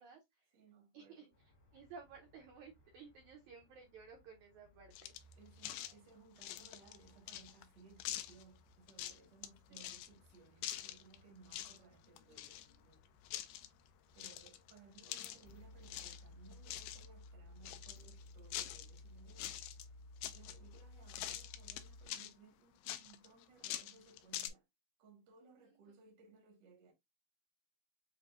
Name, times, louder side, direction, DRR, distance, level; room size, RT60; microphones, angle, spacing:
voice 1, 0.0-0.5 0.9-1.3 1.7-5.1 9.7-9.8 25.6-25.9, right 5 dB, 75° right, 1.7 m, -56 dB
voice 2, 0.5-1.3 5.4-13.4 14.1-19.9 20.3-24.6 25.0-26.9, right 4 dB, 55° right, 1.2 m, -63 dB
sound 1, 1.3-20.5, left 1 dB, 40° left, 1.5 m, -69 dB
sound 2, 4.9-5.3 5.6-5.9 6.4-7.6 8.0-8.4 8.9-9.5 9.7-10.1 10.6-11.2 11.5-11.8 12.0-12.9 13.3-13.7 14.2-15.5 15.8-16.2 16.5-17.1 17.6-19.0 19.3-19.9 20.2-20.8 21.1-22.3 22.9-24.5, left 13 dB, 85° left, 2.4 m, -45 dB
sound 3, 15.4-22.1, left 2 dB, 65° left, 1.4 m, -55 dB
7.1 x 2.6 x 2.4 m
omnidirectional pair, 4.4 m